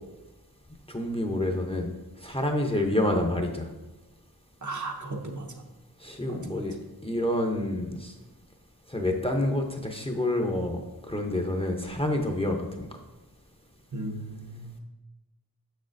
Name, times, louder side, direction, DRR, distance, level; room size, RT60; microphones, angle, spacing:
voice 1, 0.9-1.9 2.2-3.7 6.0-6.7 7.0-8.1 8.9-10.8 11.1-12.9, left 1 dB, 15° left, 3 dB, 0.7 m, -28 dB
voice 2, 4.6-5.5 6.3-6.7 13.9-14.7, right 2 dB, 45° right, 1 dB, 0.9 m, -36 dB
6.6 x 6.4 x 2.6 m, 1.1 s
wide cardioid pair, 45°, 39 cm